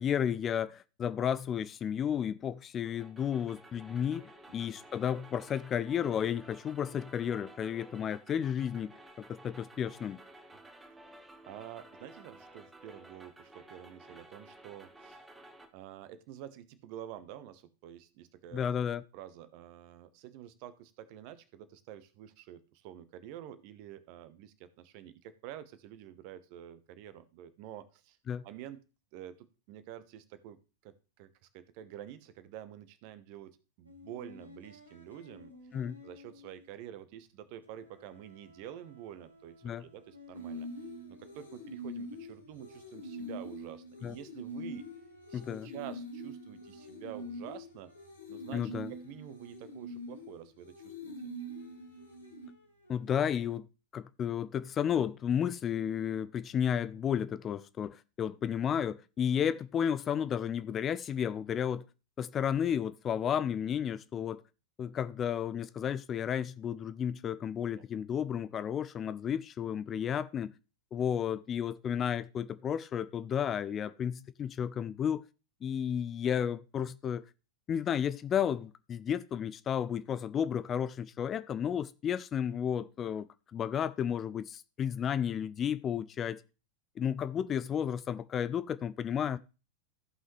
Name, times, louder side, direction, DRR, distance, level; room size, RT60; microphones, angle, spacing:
voice 1, 0.0-8.9 9.2-10.2 18.5-19.0 28.3-28.4 35.7-36.0 39.6-39.8 44.0-44.2 45.3-45.7 48.5-48.9 52.9-53.7 53.9-61.9 62.2-64.4 64.8-70.5 70.9-75.2 75.6-77.2 77.7-83.3 83.5-86.4 87.0-89.4, left 8 dB, 25° left, 0.4 m, -32 dB
sound 1, 2.8-15.7, right 1 dB, 10° right, 1.2 m, -54 dB
voice 2, 11.5-15.3 15.7-18.7 19.1-28.2 28.4-28.8 29.1-35.5 36.0-40.7 41.1-44.9 45.3-47.9 48.3-51.1 67.7-67.9, right 11 dB, 45° right, 1.0 m, -48 dB
sound 2, 33.8-37.3 37.6-44.1 44.5-50.7 51.3-53.3, left 2 dB, 90° right, 2.7 m, -58 dB
sound 3, 40.3-52.5, equal, 75° left, 2.4 m, -44 dB
14.5 x 5.7 x 3.2 m
figure-of-eight pair, 90°, 0 cm